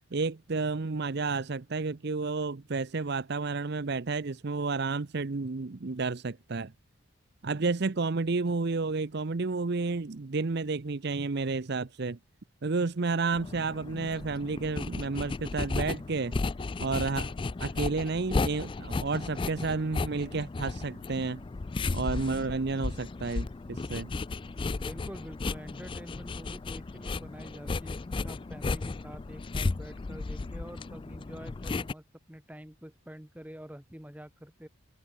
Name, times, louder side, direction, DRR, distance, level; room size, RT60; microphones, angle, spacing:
voice 1, 0.1-6.7 7.4-12.2 12.6-16.3 16.8-17.3 17.6-21.4 21.9-24.1, right 3 dB, 50° right, 0.6 m, -31 dB
sound 1, 13.3-31.9, left 3 dB, 25° left, 0.3 m, -34 dB
voice 2, 24.7-28.0 28.2-34.7, equal, 5° right, 1.2 m, -47 dB
open air
head